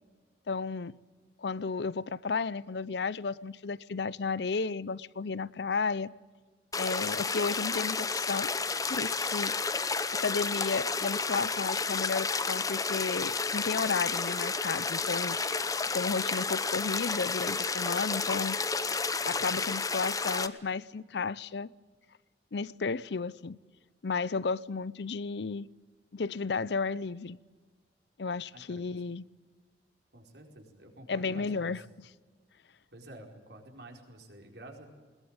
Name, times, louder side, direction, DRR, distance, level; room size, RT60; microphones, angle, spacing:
voice 1, 0.5-1.0 1.4-6.1 6.8-8.5 8.8-9.6 10.1-15.4 15.9-18.6 19.2-21.7 22.5-23.6 24.0-25.7 26.1-27.4 28.2-29.2 31.1-32.1, left 4 dB, 70° left, 0.6 m, -33 dB
sound 1, 6.7-20.5, left 4 dB, 20° left, 0.9 m, -31 dB
voice 2, 30.1-31.7 32.9-34.9, right 1 dB, 70° right, 4.7 m, -49 dB
21.5 x 19.5 x 8.9 m
head